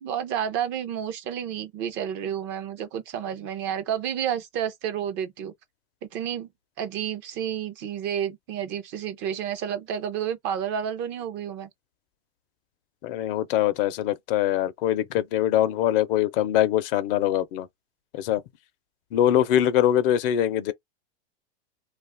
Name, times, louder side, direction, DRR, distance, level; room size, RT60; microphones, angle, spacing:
voice 1, 0.0-5.5 6.1-6.5 6.8-11.7, right 9 dB, 35° right, 0.5 m, -30 dB
voice 2, 13.0-17.7 18.1-18.4 19.1-20.7, left 11 dB, 55° left, 0.6 m, -23 dB
2.4 x 2.4 x 3.4 m
supercardioid pair, 130°, 33 cm